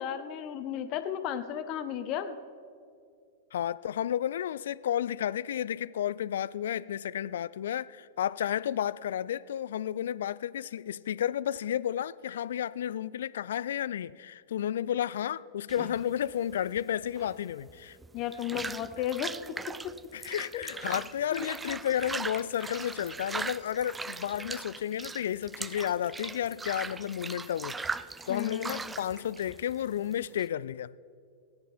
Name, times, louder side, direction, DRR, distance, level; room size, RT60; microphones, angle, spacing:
voice 1, 0.0-2.4 18.1-19.9 20.5-20.6 21.3-21.5 28.3-28.9, left 10 dB, 40° left, 0.9 m, -34 dB
voice 2, 3.5-18.0 20.1-27.9 28.3-30.9, left 10 dB, 65° left, 0.3 m, -32 dB
sound 1, 15.7-30.5, right 4 dB, 15° right, 0.3 m, -40 dB
18.0 x 9.7 x 4.4 m
figure-of-eight pair, 95°, 0 cm